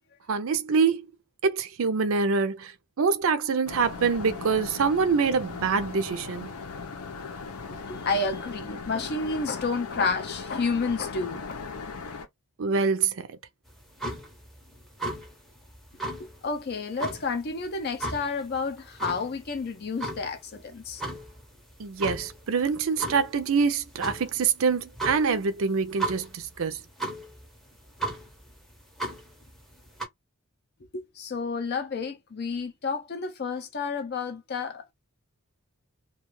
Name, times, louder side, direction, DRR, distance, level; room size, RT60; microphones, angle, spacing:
voice 1, 0.3-1.0 1.4-6.5 12.6-13.3 21.8-26.8, right 5 dB, 65° right, 0.5 m, -25 dB
sound 1, 3.7-12.3, left 4 dB, 85° left, 0.7 m, -38 dB
voice 2, 7.9-11.4 16.2-21.0 30.9-34.9, left 4 dB, 45° left, 0.5 m, -30 dB
sound 2, 13.7-30.1, right 2 dB, ahead, 0.6 m, -37 dB
2.4 x 2.3 x 3.0 m
head